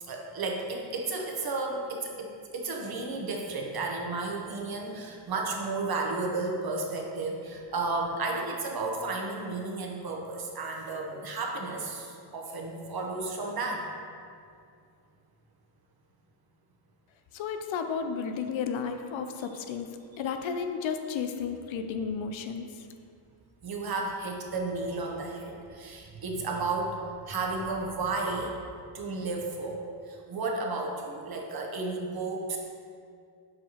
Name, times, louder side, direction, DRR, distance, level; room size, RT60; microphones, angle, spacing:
voice 1, 0.0-13.9 23.6-27.0 27.3-28.6 28.9-29.8 30.1-32.6, right 3 dB, 45° right, 0 dB, 0.9 m, -33 dB
voice 2, 17.3-19.9 20.2-22.7, left 6 dB, 65° left, 7 dB, 0.6 m, -33 dB
7.5 x 4.5 x 2.9 m, 2.4 s
cardioid pair, 105°, 50 cm